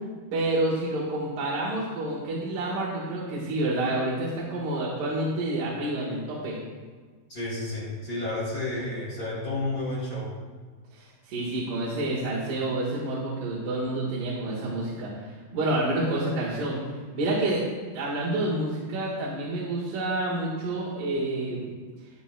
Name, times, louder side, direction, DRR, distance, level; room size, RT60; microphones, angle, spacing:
voice 1, 0.3-6.6 10.9-16.8 17.1-17.6 17.9-21.7, right 2 dB, 65° right, -6 dB, 3.2 m, -28 dB
voice 2, 7.3-10.3, left 2 dB, 25° left, -7 dB, 3.5 m, -31 dB
13.5 x 10.0 x 2.3 m, 1.4 s
omnidirectional pair, 4.3 m